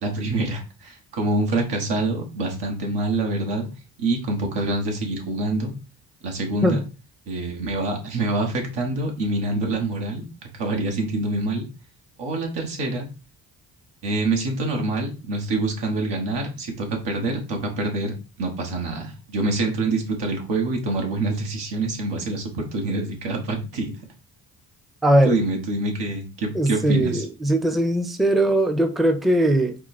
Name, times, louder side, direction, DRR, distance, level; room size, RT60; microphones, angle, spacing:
voice 1, 0.0-3.7 4.0-5.7 6.2-6.8 7.3-10.2 10.5-11.6 12.2-13.1 14.0-23.9 25.2-27.2, right 2 dB, 75° right, 1.4 m, -26 dB
voice 2, 25.0-25.4 26.5-29.8, right 1 dB, ahead, 0.6 m, -20 dB
4.4 x 2.2 x 4.2 m
supercardioid pair, 50°, 42 cm